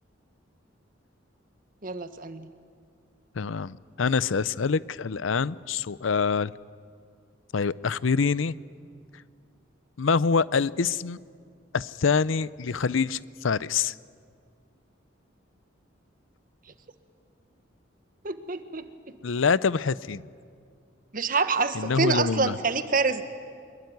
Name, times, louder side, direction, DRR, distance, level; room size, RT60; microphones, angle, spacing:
voice 1, 1.8-2.5 18.2-18.9 21.1-23.2, right 4 dB, 45° right, 10 dB, 1.4 m, -26 dB
voice 2, 3.4-6.5 7.5-8.5 10.0-11.2 11.7-13.9 19.2-20.2 21.7-22.6, left 5 dB, 85° left, 19 dB, 0.6 m, -25 dB
24.5 x 22.0 x 9.4 m, 2.1 s
head